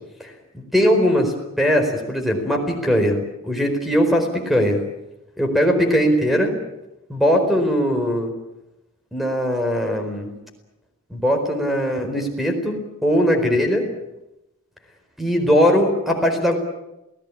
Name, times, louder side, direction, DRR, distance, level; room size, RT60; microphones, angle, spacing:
voice 1, 0.2-4.8 5.4-6.5 7.1-8.3 9.1-10.3 11.1-13.9 15.2-16.6, equal, ahead, 4 dB, 4.5 m, -20 dB
27.5 x 18.0 x 8.6 m, 0.93 s
head